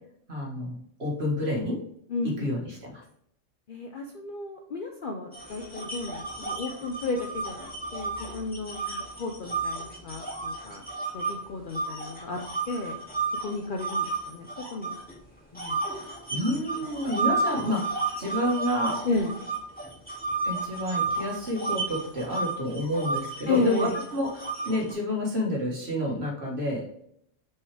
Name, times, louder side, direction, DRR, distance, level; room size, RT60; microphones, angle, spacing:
voice 1, 0.3-1.8 2.2-3.0 16.3-18.9 20.4-26.9, left 1 dB, 55° right, -1 dB, 1.8 m, -29 dB
voice 2, 2.1-2.6 3.7-10.8 11.1-12.4 12.7-13.0 13.4-15.0 15.5-15.8 16.3-16.9 19.0-19.4 23.5-24.0, left 3 dB, 50° left, 3 dB, 0.7 m, -33 dB
sound 1, 5.3-11.3 11.7-15.1 15.5-24.9, right 3 dB, 5° left, 2.1 m, -32 dB
6.0 x 4.7 x 3.4 m, 0.71 s
omnidirectional pair, 1.3 m